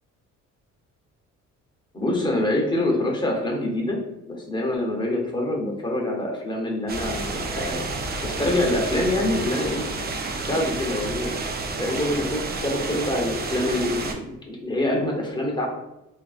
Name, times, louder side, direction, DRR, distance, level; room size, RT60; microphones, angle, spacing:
voice 1, 1.9-4.0 4.3-7.9 8.2-9.9 10.3-11.3 11.8-15.7, left 1 dB, 15° left, -1 dB, 0.8 m, -25 dB
sound 1, 6.9-14.1, right 3 dB, 30° right, 0.5 m, -30 dB
3.2 x 2.4 x 2.4 m, 0.90 s
cardioid pair, 90°, 30 cm